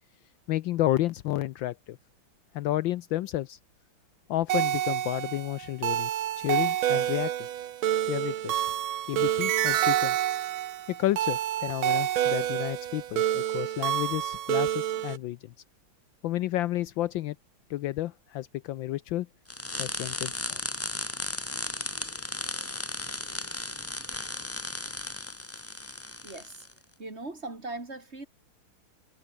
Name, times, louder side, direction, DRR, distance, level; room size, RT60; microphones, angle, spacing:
voice 1, 0.5-2.0 2.5-3.6 4.3-6.1 6.4-7.3 8.1-8.6 9.1-10.2 10.9-15.4 16.2-17.4 17.7-19.3 19.8-20.6, left 15 dB, 75° left, 1.3 m, -31 dB
sound 1, 4.5-15.2, right 11 dB, 75° right, 1.8 m, -28 dB
sound 2, 19.5-26.7, left 2 dB, 20° left, 0.4 m, -35 dB
voice 2, 26.2-26.7 27.0-28.3, right 2 dB, 30° right, 3.5 m, -39 dB
omnidirectional pair, 2.3 m